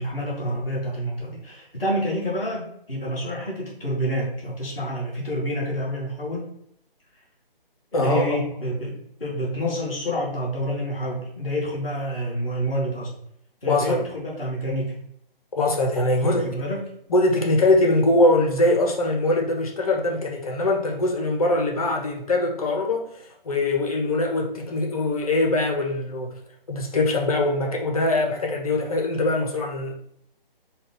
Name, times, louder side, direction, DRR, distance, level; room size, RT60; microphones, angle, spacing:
voice 1, 0.0-6.5 7.9-13.1 13.6-15.0 16.2-16.8, equal, 5° left, -14 dB, 0.5 m, -28 dB
voice 2, 7.9-8.2 13.7-14.0 15.5-16.4 17.1-26.4 26.7-29.9, left 2 dB, 40° left, 0 dB, 0.8 m, -22 dB
5.1 x 2.4 x 3.8 m, 0.72 s
figure-of-eight pair, 145°, 29 cm